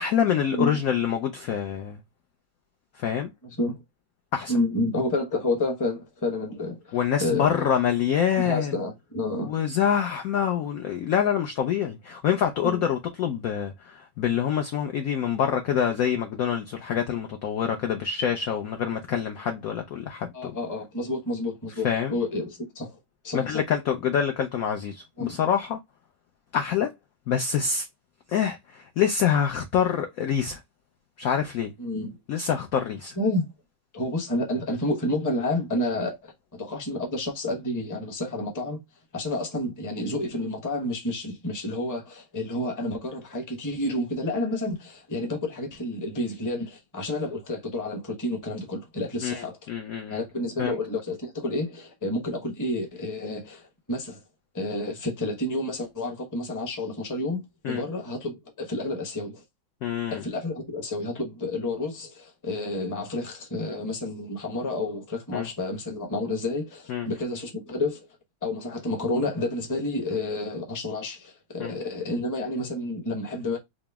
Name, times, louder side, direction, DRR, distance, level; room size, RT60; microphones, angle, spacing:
voice 1, 0.0-2.0 3.0-3.3 4.3-4.5 6.9-8.8 9.5-20.6 21.8-22.1 23.3-25.8 26.5-26.9 27.3-27.9 28.3-30.6 31.2-31.7 32.3-33.1 49.2-50.2 50.6-50.8 57.6-57.8 59.8-60.2 65.3-65.5 66.9-67.1 71.6-71.8, left 8 dB, 85° left, 0.7 m, -26 dB
voice 2, 3.4-3.8 4.5-7.5 8.4-9.5 12.6-12.8 20.3-23.0 23.2-23.4 25.2-25.4 31.8-32.2 32.4-32.5 33.2-33.5 33.9-38.8 39.1-49.7 50.1-54.2 54.5-59.4 60.1-68.1 68.4-73.6, left 2 dB, 20° left, 0.5 m, -30 dB
5.0 x 2.0 x 3.4 m
omnidirectional pair, 2.2 m